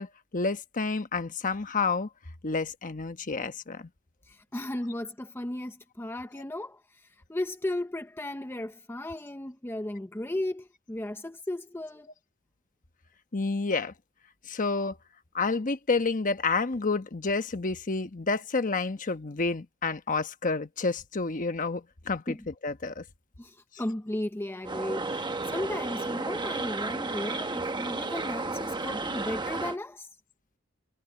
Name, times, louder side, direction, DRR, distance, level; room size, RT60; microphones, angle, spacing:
voice 1, 0.0-2.1 2.4-3.9 13.3-13.9 14.5-15.0 15.3-22.4 22.6-23.0, left 4 dB, 40° left, 1.1 m, -29 dB
voice 2, 4.2-12.1 22.3-22.5 23.4-30.2, left 1 dB, 10° left, 0.6 m, -35 dB
sound 1, 24.6-29.8, right 3 dB, 20° right, 1.1 m, -33 dB
head